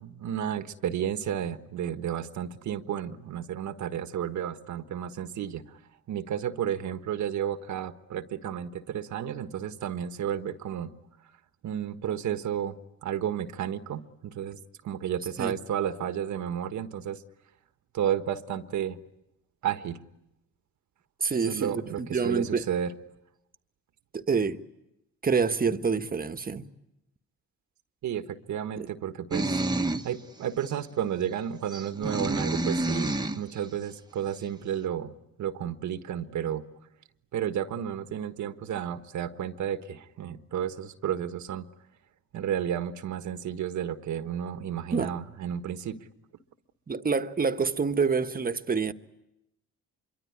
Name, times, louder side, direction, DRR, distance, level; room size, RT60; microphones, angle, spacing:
voice 1, 0.0-5.8 6.1-10.9 11.6-12.7 13.0-14.6 14.8-17.2 17.9-19.0 19.6-20.0 21.4-22.9 28.0-29.6 30.0-35.1 35.4-36.6 37.3-41.7 42.3-46.0, right 9 dB, 70° right, 1.4 m, -32 dB
voice 2, 21.2-22.6 24.1-24.6 25.2-26.6 28.8-28.9 44.9-45.1 46.9-48.9, right 5 dB, 30° right, 1.4 m, -27 dB
sound 1, 29.3-30.1 30.6-30.7 31.7-33.4, right 2 dB, 15° right, 1.3 m, -28 dB
26.0 x 23.5 x 9.7 m
cardioid pair, 90°, 30 cm